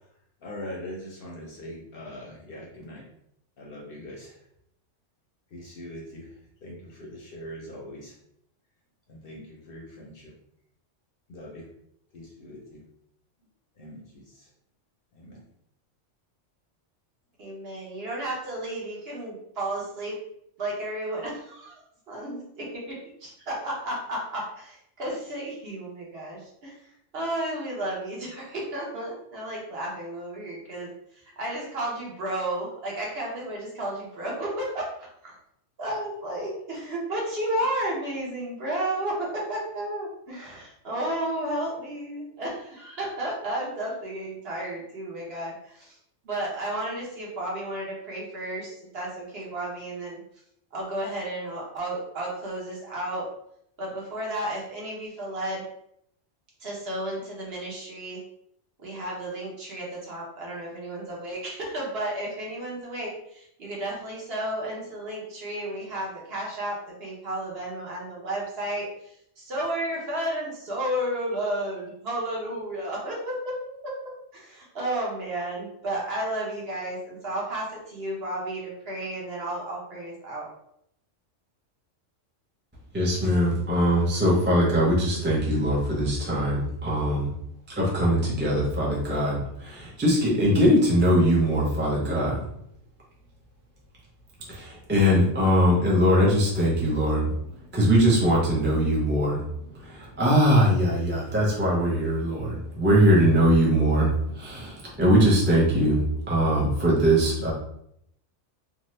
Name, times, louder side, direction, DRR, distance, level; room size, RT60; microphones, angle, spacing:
voice 1, 0.4-3.1 3.6-4.4 5.5-6.3 6.6-8.1 9.1-10.3 11.3-11.7 12.1-12.8 13.8-14.5 15.1-15.4, left 1 dB, 60° left, -2 dB, 0.7 m, -42 dB
voice 2, 17.4-20.2 20.6-26.7 27.1-35.3 35.8-46.0 46.2-50.2 50.7-53.3 53.8-55.6 56.6-58.2 58.8-73.6 73.8-80.5, right 1 dB, 55° right, -3 dB, 1.0 m, -32 dB
voice 3, 82.9-87.3 87.7-92.4 94.5-97.3 97.7-99.4 99.8-106.0 106.3-107.5, equal, 15° right, -5 dB, 0.5 m, -21 dB
2.8 x 2.3 x 3.1 m, 0.74 s
omnidirectional pair, 1.3 m